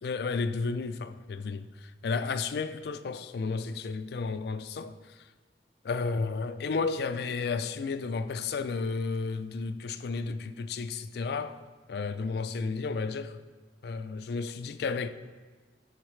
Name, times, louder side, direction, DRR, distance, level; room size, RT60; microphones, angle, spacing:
voice 1, 0.0-4.9 5.8-11.6 11.9-13.4 13.8-15.1, left 4 dB, 60° left, 0.4 m, -32 dB
12.0 x 4.0 x 3.2 m
head